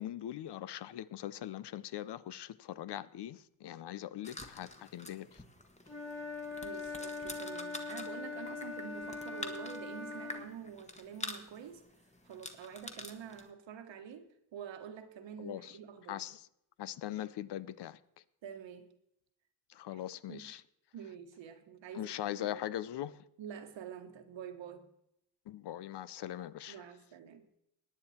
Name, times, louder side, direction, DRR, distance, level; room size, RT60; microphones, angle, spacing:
voice 1, 0.0-5.4 15.4-15.8 16.1-16.5 16.8-18.0 19.7-20.6 21.9-23.2 25.5-26.8, left 12 dB, 65° left, 0.6 m, -41 dB
sound 1, 4.2-13.5, left 2 dB, 15° left, 1.4 m, -48 dB
Wind instrument woodwind instrument, 5.9-10.5, left 4 dB, 35° left, 3.0 m, -42 dB
voice 2, 6.6-11.8 12.2-16.2 18.4-19.0 19.9-20.0 20.3-20.5 20.9-22.6 23.4-24.9 26.7-27.5, right 8 dB, 85° right, 1.5 m, -47 dB
17.5 x 9.8 x 4.3 m
cardioid pair, 95°, 43 cm